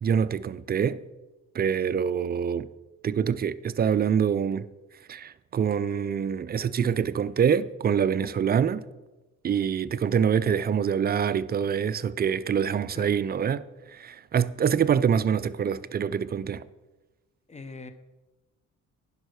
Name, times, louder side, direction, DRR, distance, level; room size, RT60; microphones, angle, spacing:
voice 1, 0.0-1.0 1.5-2.7 3.0-4.7 5.1-8.8 9.4-13.7 13.9-16.6, right 7 dB, 30° right, 0.4 m, -25 dB
voice 2, 17.5-17.9, left 3 dB, 20° left, 0.8 m, -42 dB
11.0 x 5.5 x 4.8 m
cardioid pair, 90°, 30 cm